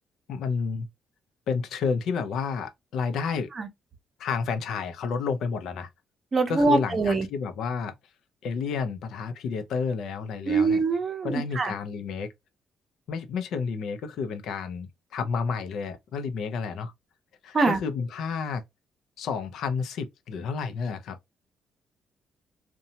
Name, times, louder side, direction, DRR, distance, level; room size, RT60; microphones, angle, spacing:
voice 1, 0.3-0.9 1.5-3.5 4.2-5.9 6.5-7.9 8.4-10.8 11.2-12.3 13.1-16.9 17.4-18.6 19.2-21.2, left 5 dB, 75° left, 0.5 m, -30 dB
voice 2, 6.3-7.3 10.5-11.7 17.5-17.8, right 3 dB, 40° right, 0.6 m, -23 dB
2.7 x 2.2 x 2.7 m
cardioid pair, 90°, 0 cm